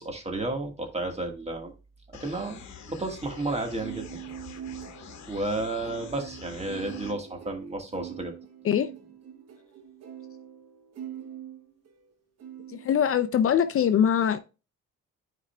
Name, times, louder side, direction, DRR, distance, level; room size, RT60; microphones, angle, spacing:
voice 1, 0.0-1.7 2.2-4.2 5.3-8.3, right 2 dB, 20° right, 1.5 m, -32 dB
sound 1, 2.1-7.1, left 7 dB, 65° left, 1.2 m, -46 dB
sound 2, 3.0-12.1 12.4-12.9, right 9 dB, 55° right, 1.3 m, -43 dB
voice 2, 12.7-14.4, left 9 dB, 45° left, 0.5 m, -23 dB
9.7 x 4.9 x 2.2 m
cardioid pair, 90°, 30 cm